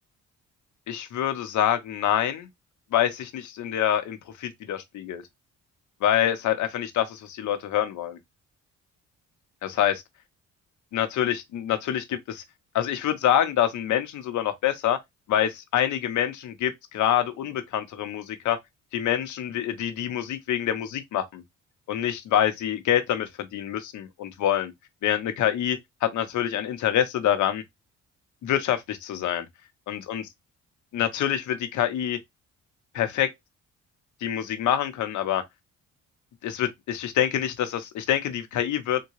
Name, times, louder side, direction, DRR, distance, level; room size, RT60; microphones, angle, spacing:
voice 1, 0.9-2.5 2.9-5.2 6.0-8.2 9.6-10.0 10.9-12.4 12.7-15.0 15.3-18.6 18.9-21.4 21.9-24.7 25.0-27.6 28.4-29.4 29.9-30.3 30.9-32.2 32.9-33.3 34.2-35.4 36.4-39.0, left 10 dB, 75° left, 0.8 m, -26 dB
3.7 x 2.2 x 3.0 m
cardioid pair, 90°, 30 cm